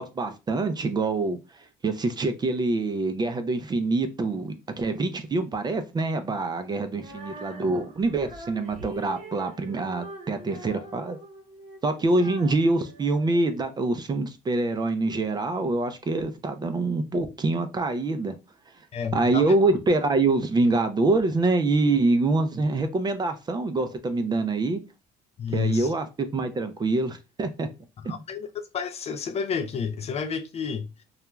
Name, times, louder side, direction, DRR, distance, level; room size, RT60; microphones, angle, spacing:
voice 1, 0.0-1.4 1.8-11.2 11.8-18.3 19.1-24.8 25.5-27.7 28.0-28.2, right 2 dB, 25° right, 0.4 m, -25 dB
Female singing, 7.0-14.0, right 1 dB, 40° right, 0.9 m, -43 dB
voice 2, 18.9-19.5 25.4-25.9 28.0-31.0, left 6 dB, 40° left, 0.4 m, -30 dB
2.3 x 2.2 x 2.9 m
cardioid pair, 110°, 17 cm